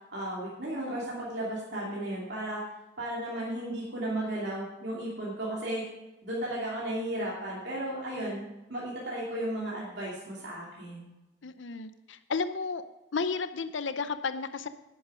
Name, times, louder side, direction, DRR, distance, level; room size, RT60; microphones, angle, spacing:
voice 1, 0.1-2.6 3.0-5.8 6.2-8.4 8.7-11.1, right 1 dB, 60° right, -6 dB, 2.7 m, -34 dB
voice 2, 11.4-12.8 13.1-14.7, left 4 dB, 75° left, 11 dB, 0.6 m, -32 dB
11.0 x 10.0 x 4.9 m, 1.0 s
head